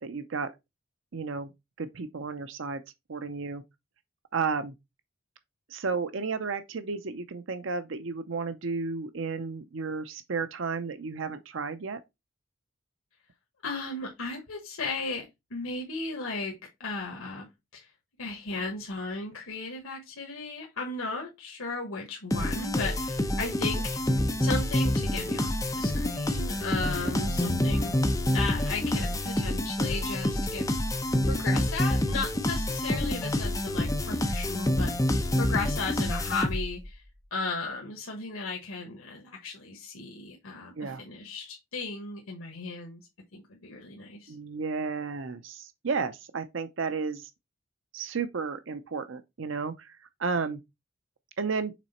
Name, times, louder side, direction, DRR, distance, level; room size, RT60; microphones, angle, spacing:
voice 1, 0.0-0.5 1.1-1.5 1.8-2.8 3.1-3.6 4.3-4.7 5.7-12.0 27.0-27.5 40.8-41.0 44.3-47.3 47.9-50.6 51.4-51.7, right 4 dB, 65° right, 0.6 m, -33 dB
voice 2, 13.6-17.5 17.7-17.9 18.2-30.7 31.3-37.0 37.3-43.0 43.3-44.3, left 3 dB, 85° left, 1.3 m, -36 dB
sound 1, 22.3-36.9, left 1 dB, 15° left, 0.8 m, -27 dB
6.1 x 3.9 x 4.2 m
head